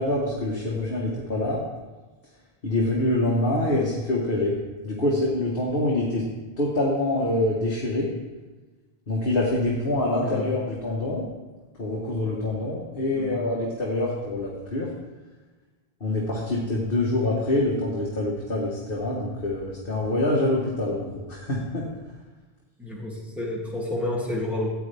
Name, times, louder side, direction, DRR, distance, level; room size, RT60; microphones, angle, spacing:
voice 1, 0.0-1.6 2.6-4.6 4.8-6.2 6.6-8.1 9.1-11.3 11.8-14.9 16.0-21.8, left 1 dB, 60° left, -4 dB, 1.8 m, -25 dB
voice 2, 22.8-24.7, left 1 dB, ahead, -5 dB, 2.6 m, -30 dB
14.0 x 8.7 x 3.5 m, 1.3 s
omnidirectional pair, 1.0 m